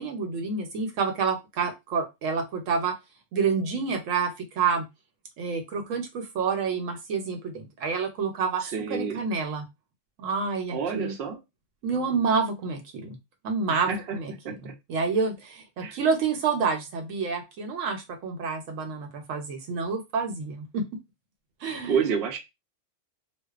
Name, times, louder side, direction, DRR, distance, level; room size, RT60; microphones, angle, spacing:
voice 1, 0.0-2.9 3.3-4.9 5.4-9.7 10.2-11.1 11.8-13.2 13.4-20.8 21.6-22.0, right 5 dB, 85° right, 5 dB, 1.0 m, -28 dB
voice 2, 8.6-9.2 10.7-11.4 13.7-14.2 14.4-14.7 15.8-16.0 21.8-22.4, right 6 dB, 65° right, 3 dB, 0.8 m, -29 dB
2.6 x 2.2 x 2.3 m, 0.22 s
omnidirectional pair, 1.3 m